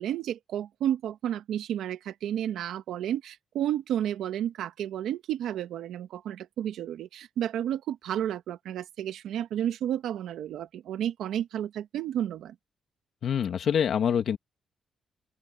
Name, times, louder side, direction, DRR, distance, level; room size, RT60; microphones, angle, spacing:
voice 1, 0.0-12.5, right 10 dB, 85° right, 1.7 m, -31 dB
voice 2, 13.2-14.4, left 8 dB, 65° left, 2.5 m, -25 dB
open air
cardioid pair, 95°, 0 cm